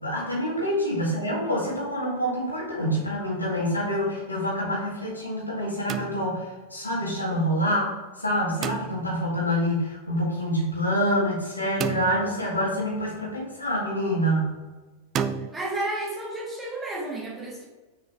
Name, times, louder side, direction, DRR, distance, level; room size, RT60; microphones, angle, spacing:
voice 1, 0.0-7.9 8.2-14.6, equal, 85° left, -4 dB, 1.9 m, -26 dB
sound 1, 5.9-6.7 8.6-9.3 11.8-12.7 15.2-15.5, right 7 dB, 30° right, 0.4 m, -31 dB
voice 2, 15.5-17.7, right 2 dB, 10° right, -5 dB, 1.9 m, -31 dB
6.1 x 4.8 x 3.3 m, 1.2 s
figure-of-eight pair, 90°, 0 cm